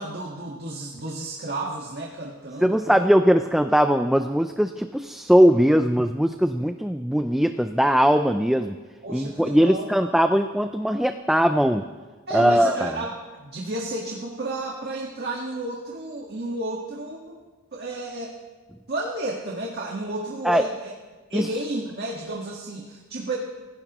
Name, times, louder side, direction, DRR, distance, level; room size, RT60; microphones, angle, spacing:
voice 1, 0.0-3.0 9.0-10.3 12.3-17.4 17.7-18.4 18.9-20.9 21.3-23.4, right 2 dB, 50° right, -1 dB, 1.7 m, -32 dB
voice 2, 2.6-8.7 9.1-11.8 12.3-12.9 20.4-20.6 21.3-21.5, equal, ahead, 7 dB, 0.4 m, -20 dB
28.0 x 16.5 x 3.0 m, 1.3 s
head